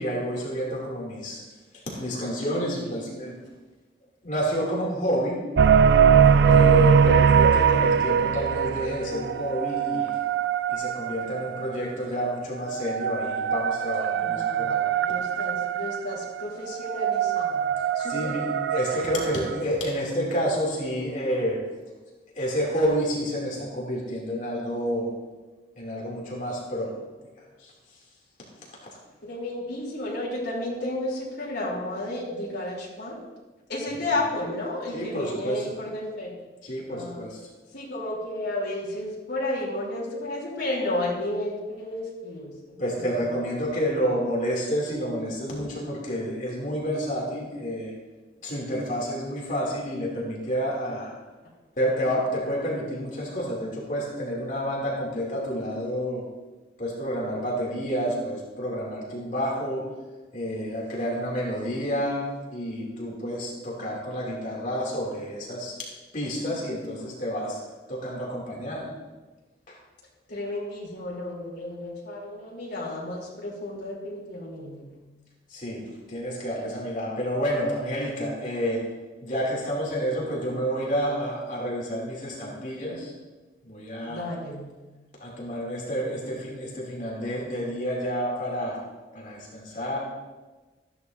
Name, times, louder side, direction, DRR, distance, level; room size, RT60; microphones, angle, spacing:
voice 1, 0.0-1.4 1.7-3.4 4.2-5.4 6.4-10.2 10.7-14.9 18.1-21.6 22.3-25.1 25.8-27.0 27.2-27.3 27.6-27.7 34.9-35.7 36.6-37.4 42.8-47.9 48.4-51.1 51.8-56.3 56.8-59.9 60.3-65.7 66.1-67.6 67.9-68.9 69.7-69.8 75.5-78.8 79.2-83.1 83.6-84.2 85.2-88.8 89.1-90.0, equal, 40° left, -4 dB, 2.8 m, -29 dB
sound 1, 5.6-11.8 12.6-19.6, right 7 dB, 65° right, 0.3 m, -22 dB
voice 2, 14.2-18.4 29.2-33.2 33.7-36.3 36.9-37.2 37.7-43.4 70.3-74.9 84.1-84.7, left 1 dB, 60° left, -7 dB, 3.4 m, -32 dB
14.0 x 10.5 x 2.7 m, 1.2 s
head